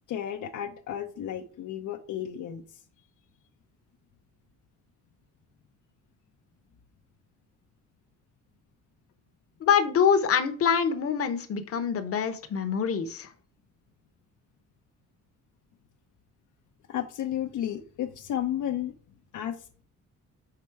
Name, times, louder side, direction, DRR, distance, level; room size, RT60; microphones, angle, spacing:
voice 1, 0.1-2.8 16.9-18.9 19.3-19.8, left 10 dB, 75° left, 4 dB, 0.7 m, -33 dB
voice 2, 9.6-13.3, left 7 dB, 45° left, 8 dB, 0.9 m, -25 dB
5.9 x 4.2 x 4.7 m, 0.43 s
cardioid pair, 135°, 31 cm